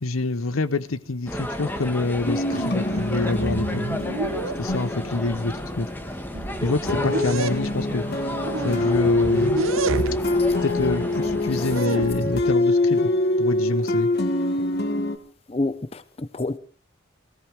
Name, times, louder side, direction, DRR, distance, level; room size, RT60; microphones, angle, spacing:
voice 1, 0.0-3.8 4.6-5.9 6.6-8.0 8.6-9.5 10.6-13.1 13.4-14.1, left 3 dB, 85° left, 0.8 m, -26 dB
sound 1, 1.3-11.8, equal, 10° left, 1.3 m, -33 dB
sound 2, 2.3-6.3 6.8-15.2, left 2 dB, 50° left, 1.4 m, -25 dB
sound 3, 2.5-2.6 2.9-4.8 5.6-5.7 6.1-7.7 8.4-10.4 10.8-12.4, right 4 dB, 80° right, 0.8 m, -31 dB
voice 2, 15.5-16.6, left 2 dB, 30° left, 0.6 m, -29 dB
19.5 x 16.5 x 3.5 m
head